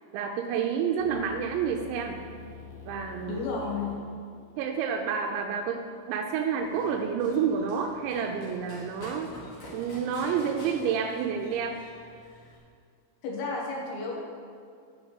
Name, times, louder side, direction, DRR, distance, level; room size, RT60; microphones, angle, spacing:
voice 1, 0.1-2.2 2.9-3.4 4.6-9.3 9.7-11.8, right 7 dB, 85° right, 3 dB, 3.0 m, -29 dB
sound 1, 1.0-6.9, left 5 dB, 65° left, 1.7 m, -48 dB
voice 2, 3.3-4.0 13.2-14.2, left 3 dB, 85° left, -2 dB, 4.0 m, -32 dB
Run, 6.6-12.6, equal, 45° left, 3.1 m, -47 dB
8.6 x 5.9 x 8.1 m, 2.3 s
omnidirectional pair, 5.2 m